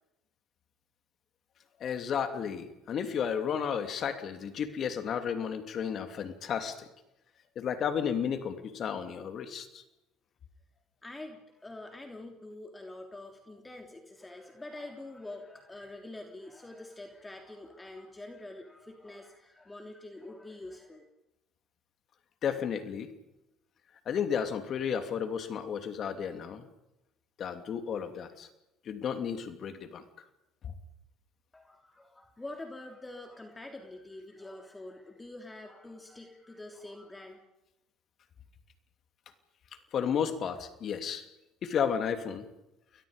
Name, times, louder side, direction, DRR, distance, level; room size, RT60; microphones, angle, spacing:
voice 1, 1.8-6.9 7.6-9.8 22.4-23.1 24.1-26.7 27.4-28.5 28.8-30.0 39.9-41.2 41.6-42.5, left 7 dB, 50° left, 8 dB, 2.9 m, -33 dB
voice 2, 11.0-21.0 31.5-37.4, left 2 dB, 15° left, 4 dB, 3.3 m, -46 dB
30.0 x 22.5 x 5.2 m, 0.92 s
hypercardioid pair, 70°, 0 cm